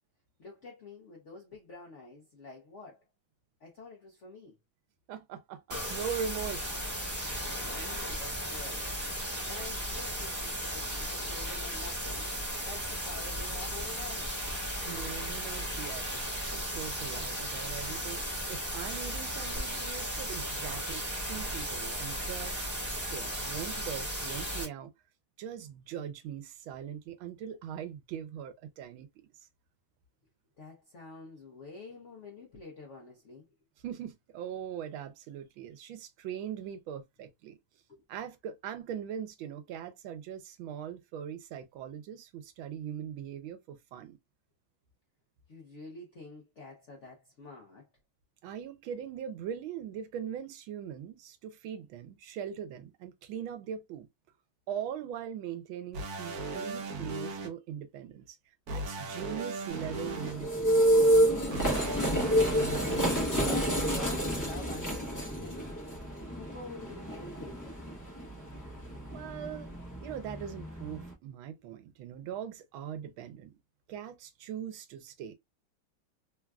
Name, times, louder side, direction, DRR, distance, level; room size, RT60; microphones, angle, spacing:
voice 1, 0.4-3.0 3.6-4.6 7.5-9.0 9.4-12.3 12.6-14.4 20.4-20.5 30.6-33.5 37.9-38.0 45.5-47.9 62.7-65.7 66.3-67.9, left 3 dB, 70° left, 0.6 m, -48 dB
voice 2, 5.1-7.0 14.8-18.2 18.5-24.9 25.4-29.1 33.8-37.6 38.1-44.2 48.4-54.1 54.7-58.4 58.7-61.0 69.1-69.7 70.0-73.6 73.9-75.3, right 9 dB, 90° right, 1.4 m, -41 dB
sound 1, 5.7-24.6, equal, 10° right, 0.9 m, -35 dB
sound 2, 55.9-57.5 58.7-60.3 61.5-63.2, right 2 dB, 65° right, 1.0 m, -37 dB
sound 3, 59.7-71.1, right 1 dB, 30° left, 0.3 m, -29 dB
3.7 x 2.3 x 2.2 m
omnidirectional pair, 2.2 m